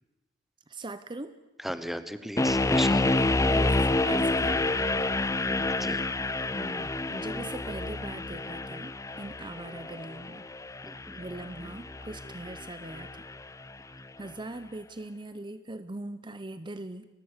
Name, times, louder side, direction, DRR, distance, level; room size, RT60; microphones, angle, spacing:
voice 1, 0.7-1.3 3.2-4.9 6.5-8.9 9.2-10.4 11.2-13.3 13.9-17.1, right 2 dB, 25° right, 12 dB, 0.7 m, -41 dB
voice 2, 1.6-3.1 5.6-6.0 10.8-11.2, equal, ahead, 11 dB, 1.0 m, -36 dB
sound 1, 2.4-13.4, left 2 dB, 15° left, 0.6 m, -28 dB
29.5 x 15.0 x 6.7 m, 1.1 s
head